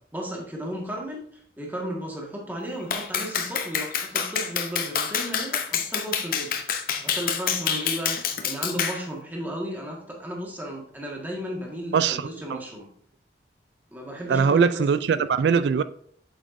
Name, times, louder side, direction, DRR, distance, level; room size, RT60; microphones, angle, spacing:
voice 1, 0.1-6.6 7.0-12.9 13.9-14.8 15.1-15.2, equal, 10° right, 1.6 m, -34 dB
Clapping, 2.9-9.0, left 7 dB, 50° left, 0.7 m, -27 dB
voice 2, 11.9-12.6 14.3-15.8, right 6 dB, 70° right, 0.3 m, -22 dB
8.3 x 7.3 x 2.6 m
head